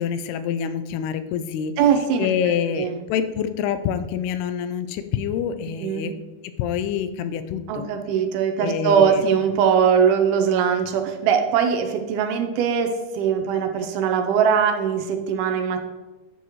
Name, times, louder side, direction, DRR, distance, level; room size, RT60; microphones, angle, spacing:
voice 1, 0.0-1.7 2.2-6.1 6.6-7.9 8.6-9.2, left 8 dB, 85° left, 10 dB, 2.6 m, -26 dB
voice 2, 1.8-2.3 2.8-3.0 5.8-6.1 7.7-15.8, right 7 dB, 80° right, 5 dB, 2.6 m, -21 dB
10.0 x 7.0 x 3.1 m, 1.1 s
omnidirectional pair, 4.6 m